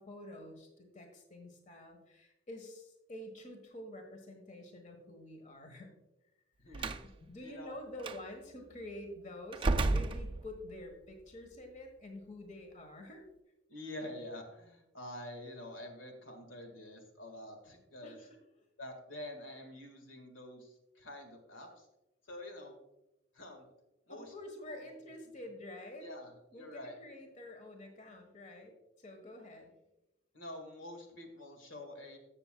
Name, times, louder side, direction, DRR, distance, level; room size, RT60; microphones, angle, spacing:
voice 1, 0.0-5.9 6.6-13.3 18.0-18.6 24.1-26.1 26.5-29.8, left 1 dB, 40° left, 4 dB, 1.3 m, -48 dB
voice 2, 6.6-7.8 13.7-18.3 18.8-21.9 22.2-22.7 23.3-23.7 24.1-24.3 24.7-24.9 26.0-27.0 30.3-32.2, left 1 dB, 85° left, 4 dB, 1.8 m, -47 dB
Slam, 6.7-7.1 8.0-8.2 9.5-10.8, right 2 dB, 25° right, 0.4 m, -32 dB
15.0 x 7.0 x 2.3 m, 0.93 s
head